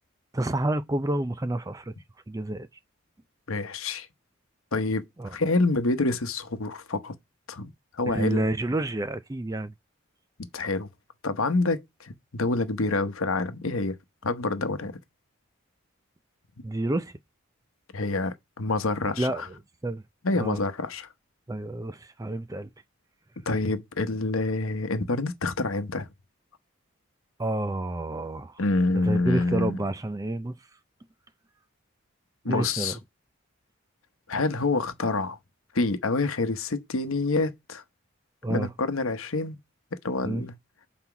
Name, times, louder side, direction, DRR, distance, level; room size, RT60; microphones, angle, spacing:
voice 1, 0.3-1.9 2.3-2.7 5.2-5.4 8.1-9.7 16.6-17.1 19.2-19.5 19.8-20.0 20.3-20.6 21.5-22.7 27.4-28.6 29.0-30.6 32.4-33.0 38.4-38.7 40.2-40.4, right 1 dB, 15° right, 0.4 m, -29 dB
voice 2, 3.5-4.1 4.7-5.0 5.3-7.1 7.5-7.7 8.0-8.4 10.5-10.9 11.2-14.0 14.2-14.9 17.9-19.5 20.2-21.1 23.5-26.1 28.6-29.7 32.4-33.0 34.3-35.4 35.7-37.8 38.5-39.6 40.0-40.5, left 3 dB, 75° left, 0.9 m, -27 dB
5.9 x 4.3 x 5.9 m
head